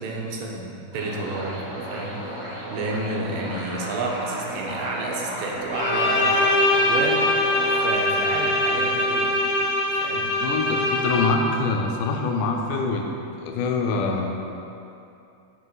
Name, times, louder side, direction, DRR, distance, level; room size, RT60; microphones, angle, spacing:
voice 1, 0.0-2.2 2.7-6.3 6.7-7.2 7.8-9.6 10.0-10.3, right 2 dB, 85° right, -1 dB, 2.7 m, -30 dB
sound 1, 0.9-7.9, right 1 dB, 65° right, 0.4 m, -34 dB
Bowed string instrument, 5.7-11.6, left 1 dB, 60° left, 1.9 m, -22 dB
voice 2, 10.4-13.1 13.4-14.3, left 4 dB, 75° left, 1 dB, 2.2 m, -24 dB
7.8 x 5.9 x 5.6 m, 2.7 s
omnidirectional pair, 4.0 m